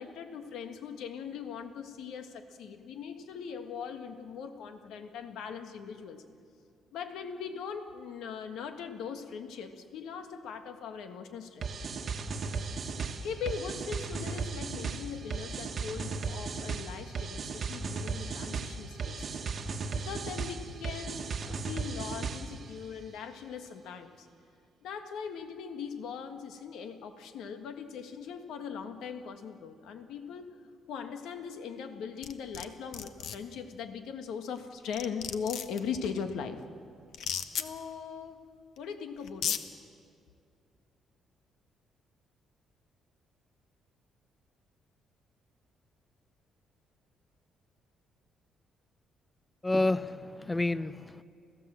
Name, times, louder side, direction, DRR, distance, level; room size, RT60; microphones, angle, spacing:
voice 1, 0.0-6.2 6.9-11.7 13.2-19.4 19.9-24.3 24.8-30.5 30.9-36.6 37.5-38.4 38.8-39.6, left 6 dB, 80° left, 6 dB, 1.6 m, -40 dB
sound 1, 11.6-22.7, right 4 dB, 35° right, 1.3 m, -36 dB
sound 2, 32.2-32.7 32.9-33.4 34.6-34.7 34.9-35.8 37.1-37.7 38.8-38.9 39.3-39.6, left 8 dB, 60° left, 1.0 m, -33 dB
voice 2, 49.6-51.2, left 2 dB, 10° left, 14 dB, 0.5 m, -29 dB
29.0 x 15.5 x 7.6 m, 2.3 s
cardioid pair, 180°, 0 cm